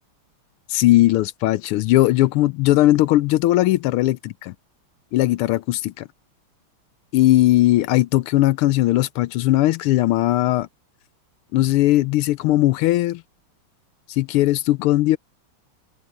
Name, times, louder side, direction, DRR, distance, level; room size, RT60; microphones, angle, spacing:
voice 1, 0.7-4.5 5.1-6.1 7.1-10.7 11.5-13.2 14.1-15.2, left 16 dB, 85° left, 1.5 m, -18 dB
open air
omnidirectional pair, 2.4 m